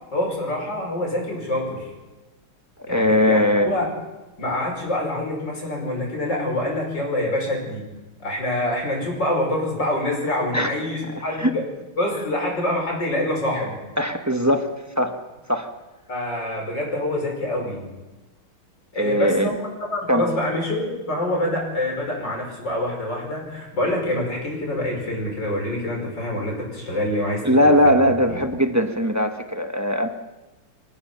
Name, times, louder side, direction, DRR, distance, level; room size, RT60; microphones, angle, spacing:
voice 1, 0.1-1.9 2.9-3.9 4.4-7.9 8.2-11.6 12.0-13.8 16.1-17.9 18.9-19.6 19.9-27.9 28.3-28.4, left 1 dB, 55° left, -1 dB, 6.3 m, -26 dB
voice 2, 2.8-3.7 10.5-10.7 11.4-11.5 14.0-14.7 15.0-15.2 15.5-15.7 19.0-19.5 20.1-20.3 27.4-30.1, left 1 dB, 15° right, 5 dB, 0.6 m, -19 dB
27.0 x 16.5 x 5.8 m, 1.1 s
omnidirectional pair, 2.3 m